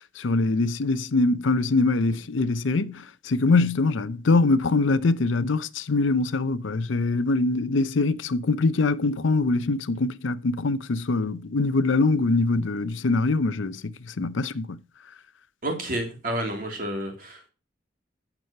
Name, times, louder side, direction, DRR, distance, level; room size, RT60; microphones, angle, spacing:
voice 1, 0.2-14.8, left 3 dB, 85° left, 0.6 m, -23 dB
voice 2, 15.6-17.5, right 1 dB, 45° right, 2.6 m, -30 dB
9.3 x 6.2 x 5.6 m
head